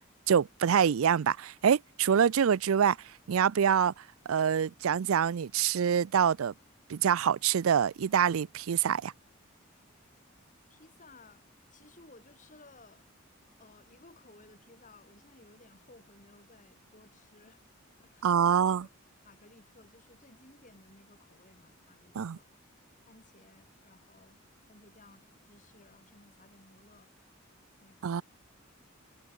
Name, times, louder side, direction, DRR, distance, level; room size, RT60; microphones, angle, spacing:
voice 1, 0.3-3.0 3.3-3.9 4.3-6.5 6.9-9.1 18.2-18.8 22.2-22.4 28.0-28.2, right 8 dB, 80° right, 0.4 m, -25 dB
voice 2, 10.7-13.1 13.6-17.6 18.0-18.9 19.2-22.5 23.1-24.4 24.7-27.1 27.8-28.2, left 2 dB, 40° left, 5.7 m, -58 dB
head